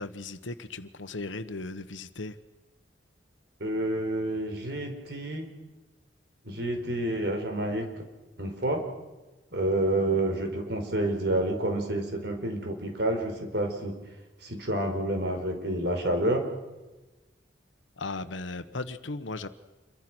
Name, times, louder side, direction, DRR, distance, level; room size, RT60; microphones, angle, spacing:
voice 1, 0.0-2.4 18.0-19.5, left 3 dB, 90° left, 10 dB, 1.2 m, -36 dB
voice 2, 3.6-5.5 6.4-8.0 8.4-8.8 9.5-13.9 14.4-16.4, right 1 dB, 60° right, 4 dB, 4.6 m, -29 dB
28.0 x 23.5 x 6.2 m, 1.1 s
head